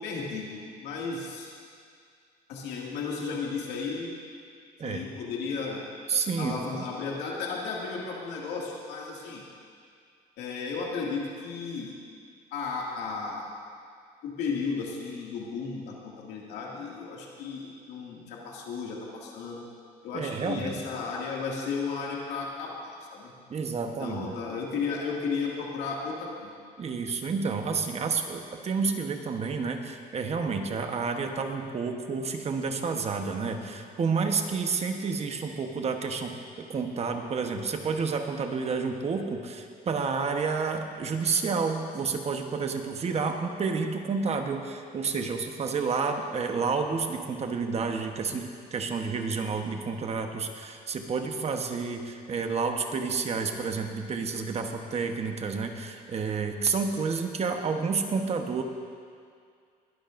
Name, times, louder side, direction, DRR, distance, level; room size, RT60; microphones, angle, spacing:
voice 1, 0.0-1.5 2.5-4.1 4.8-5.8 6.4-9.4 10.4-11.9 12.5-13.5 14.2-19.6 20.0-23.3 24.0-26.5, left 5 dB, 85° left, -3 dB, 2.3 m, -34 dB
voice 2, 6.1-6.8 20.1-20.8 23.5-24.3 26.8-58.6, right 5 dB, 40° right, 5 dB, 1.1 m, -30 dB
20.5 x 12.5 x 2.6 m, 2.3 s
cardioid pair, 110°, 17 cm